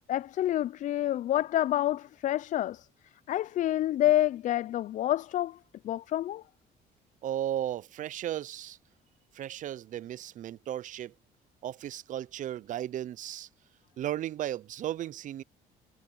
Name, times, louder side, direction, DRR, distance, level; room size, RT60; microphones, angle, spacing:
voice 1, 0.0-2.9 3.3-5.6 5.8-6.4, left 13 dB, 50° left, 0.4 m, -28 dB
voice 2, 7.2-8.8 9.3-11.1 11.6-13.5 14.0-15.4, right 12 dB, 50° right, 0.5 m, -35 dB
cardioid pair, 110°, 17 cm